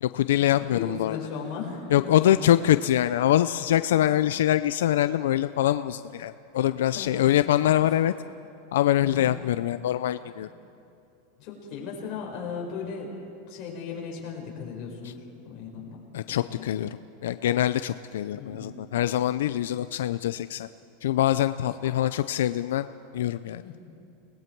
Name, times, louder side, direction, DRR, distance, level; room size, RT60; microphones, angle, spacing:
voice 1, 0.0-1.2 1.9-8.1 8.7-10.5 16.1-16.9 17.2-20.7 21.0-22.9 23.1-23.8, left 12 dB, 90° left, 12 dB, 0.5 m, -24 dB
voice 2, 0.7-2.5 6.9-7.2 9.0-9.3 10.2-10.3 11.4-13.1 13.5-16.7 18.3-18.8 21.8-22.0 23.6-23.8, left 6 dB, 35° left, -2 dB, 5.0 m, -37 dB
30.0 x 20.0 x 4.6 m, 2.6 s
supercardioid pair, 175°, 0 cm